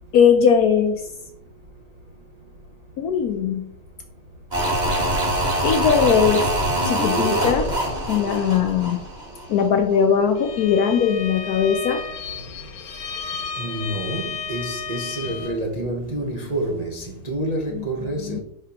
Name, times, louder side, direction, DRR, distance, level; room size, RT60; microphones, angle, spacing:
voice 1, 0.1-1.0 3.0-3.7 5.6-6.5 6.8-7.7 8.1-9.0 9.5-12.0 18.2-18.4, left 7 dB, 75° left, 6 dB, 0.8 m, -19 dB
sound 1, 4.5-9.7 9.9-10.0, right 1 dB, 20° right, 1.7 m, -24 dB
Bowed string instrument, 10.3-15.6, left 5 dB, 60° left, 1.1 m, -33 dB
voice 2, 13.6-18.4, right 1 dB, 60° right, -1 dB, 0.4 m, -28 dB
8.3 x 5.8 x 2.9 m, 0.74 s
omnidirectional pair, 2.2 m